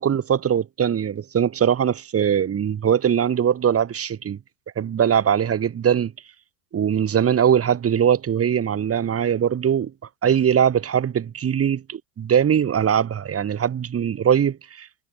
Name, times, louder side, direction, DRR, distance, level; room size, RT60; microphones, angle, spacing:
voice 1, 0.0-4.4 4.8-6.1 6.7-9.9 10.2-14.9, right 8 dB, 30° right, 5.6 m, -21 dB
hypercardioid pair, 100°, 46 cm